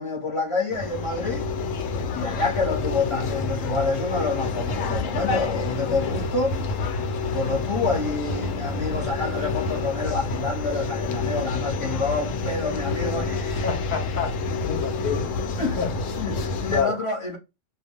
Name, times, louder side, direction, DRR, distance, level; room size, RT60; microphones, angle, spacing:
voice 1, 0.0-1.5 2.1-6.6 7.3-13.7 15.6-15.8 16.2-17.4, left 3 dB, 30° left, 0.8 m, -28 dB
sound 1, 0.7-16.8, left 3 dB, 85° left, 1.0 m, -28 dB
voice 2, 13.6-15.3 15.8-15.9 16.7-17.0, left 6 dB, 60° left, 0.5 m, -28 dB
2.4 x 2.2 x 3.1 m
omnidirectional pair, 1.3 m